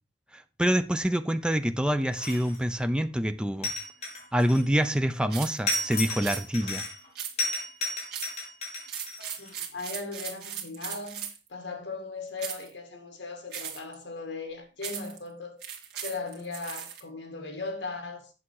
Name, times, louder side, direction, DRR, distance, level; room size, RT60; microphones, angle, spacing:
voice 1, 0.3-3.7 4.3-6.8, equal, 5° right, 0.5 m, -26 dB
sound 1, 2.1-2.7 3.6-4.9 5.7-7.1 7.4-9.5, left 2 dB, 35° left, 4.0 m, -33 dB
sound 2, 5.3-5.6 6.2-6.4 7.2-7.6 8.1-8.4 8.8-11.5 12.4-12.7 13.5-13.9 14.8-15.2 15.6-17.0, right 8 dB, 55° right, 2.2 m, -38 dB
voice 2, 9.2-15.7 16.0-18.3, left 3 dB, 65° left, 2.3 m, -38 dB
8.6 x 7.0 x 4.7 m
head